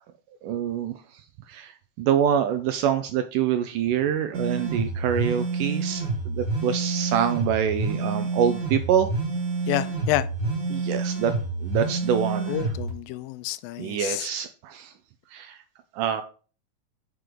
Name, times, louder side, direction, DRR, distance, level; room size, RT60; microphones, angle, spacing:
voice 1, 0.4-0.9 1.5-1.7 2.0-9.1 10.7-11.3 11.6-12.5 13.8-14.9 15.3-15.6 15.9-16.2, right 9 dB, 80° right, 2.0 m, -25 dB
sound 1, 4.3-12.9, right 3 dB, 35° right, 2.1 m, -28 dB
voice 2, 9.7-10.3 12.5-14.3, left 16 dB, 85° left, 2.3 m, -29 dB
6.0 x 5.0 x 6.7 m
omnidirectional pair, 4.1 m